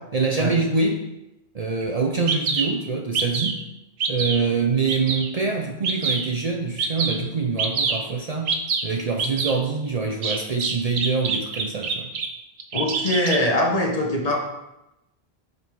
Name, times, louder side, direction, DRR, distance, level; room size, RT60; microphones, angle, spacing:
voice 1, 0.1-1.1 1.5-3.6 4.1-8.5 8.8-12.1, right 4 dB, 45° right, 3 dB, 0.6 m, -25 dB
Bird vocalization bird call bird song, 1.8-1.9 2.3-2.7 3.1-3.6 4.0-4.4 4.9-5.3 5.8-6.3 6.8-7.2 7.6-8.0 8.5-8.8 9.2-9.5 10.2-12.3 12.6-13.4, right 5 dB, 80° right, 1.1 m, -25 dB
voice 2, 12.7-14.4, left 1 dB, 40° left, 0 dB, 1.2 m, -22 dB
6.7 x 5.4 x 4.6 m, 0.92 s
omnidirectional pair, 1.1 m